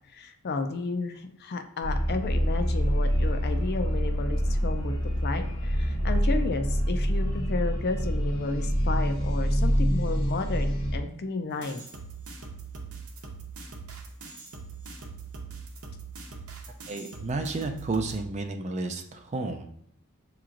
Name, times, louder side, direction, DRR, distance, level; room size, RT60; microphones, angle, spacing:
voice 1, 0.1-4.9 5.2-11.8, left 3 dB, 45° left, 6 dB, 0.4 m, -32 dB
sound 1, 1.8-11.0, equal, 70° left, 0.9 m, -26 dB
sound 2, 11.6-18.2, right 4 dB, 75° right, 0.8 m, -42 dB
voice 2, 16.9-19.7, right 3 dB, 30° right, 6 dB, 0.4 m, -32 dB
6.8 x 3.0 x 2.5 m, 0.72 s
head